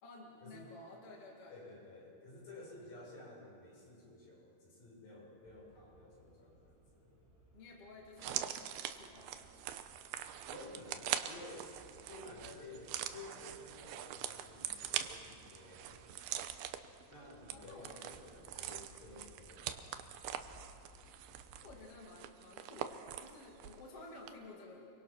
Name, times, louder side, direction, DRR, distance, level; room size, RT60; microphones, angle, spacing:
voice 1, 0.0-1.6 7.5-9.9 17.5-18.2 19.1-19.3 21.6-24.9, left 2 dB, 45° left, -1 dB, 2.9 m, -54 dB
voice 2, 1.5-7.1 10.4-11.7 12.1-16.0 17.1-20.1, left 2 dB, 70° left, -4 dB, 8.7 m, -53 dB
sound 1, 5.4-21.9, right 1 dB, 5° right, 3.5 m, -64 dB
sound 2, 8.2-23.9 24.1-24.3, right 11 dB, 85° right, 2.8 m, -43 dB
27.5 x 24.0 x 5.9 m, 2.5 s
omnidirectional pair, 4.3 m